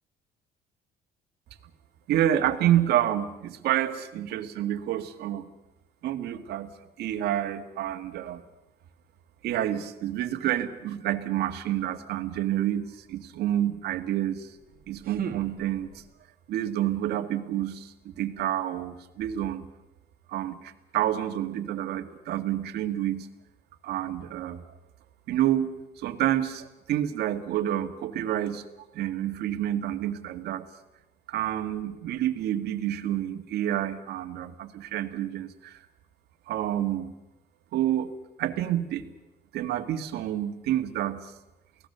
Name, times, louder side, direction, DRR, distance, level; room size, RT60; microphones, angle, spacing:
voice 1, 2.1-5.5 6.0-8.4 9.4-14.5 14.9-16.0 16.5-19.7 20.3-23.3 23.8-24.6 25.3-28.6 28.9-30.7 31.3-35.8 36.5-37.1 37.7-38.1 38.4-39.0 39.5-41.3, right 12 dB, 75° right, 7 dB, 1.9 m, -28 dB
sound 1, 14.5-16.2, right 9 dB, 60° right, 2.0 m, -39 dB
29.5 x 17.5 x 6.8 m, 0.97 s
cardioid pair, 110°, 17 cm